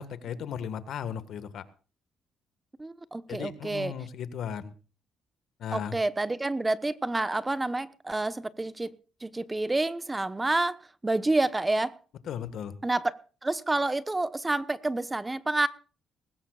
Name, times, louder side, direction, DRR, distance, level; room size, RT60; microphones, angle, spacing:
voice 1, 0.0-1.6 3.3-4.7 5.6-5.9 12.3-12.7, left 8 dB, 70° left, 1.6 m, -36 dB
voice 2, 2.8-4.0 5.7-8.9 9.2-12.0 12.8-15.7, right 2 dB, 15° right, 1.0 m, -29 dB
20.0 x 17.0 x 2.4 m
cardioid pair, 90°, 0 cm